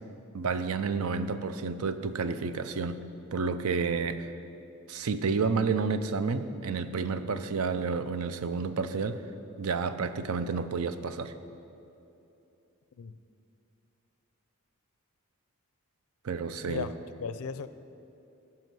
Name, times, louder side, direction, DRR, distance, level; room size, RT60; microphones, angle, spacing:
voice 1, 0.3-3.0 3.3-4.3 4.9-9.2 9.6-11.3 16.2-16.9, right 4 dB, 75° right, 11 dB, 0.5 m, -30 dB
voice 2, 17.2-17.7, left 6 dB, 75° left, 13 dB, 0.4 m, -36 dB
14.5 x 5.6 x 6.1 m, 2.8 s
head